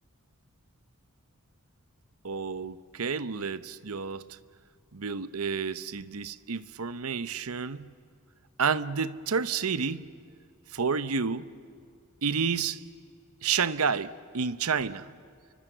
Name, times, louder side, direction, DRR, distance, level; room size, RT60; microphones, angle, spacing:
voice 1, 2.2-4.4 4.9-7.9 8.6-10.1 10.7-11.5 12.2-12.8 13.4-15.1, right 5 dB, 85° right, 14 dB, 0.9 m, -30 dB
29.5 x 24.0 x 7.9 m, 2.3 s
head